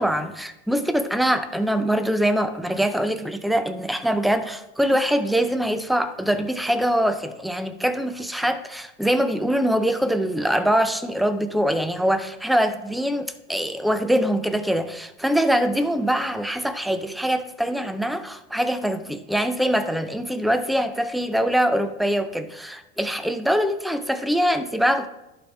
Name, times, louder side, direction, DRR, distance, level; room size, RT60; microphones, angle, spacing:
voice 1, 0.0-25.1, equal, ahead, 9 dB, 0.3 m, -23 dB
11.5 x 4.3 x 3.3 m, 0.97 s
supercardioid pair, 110°, 32 cm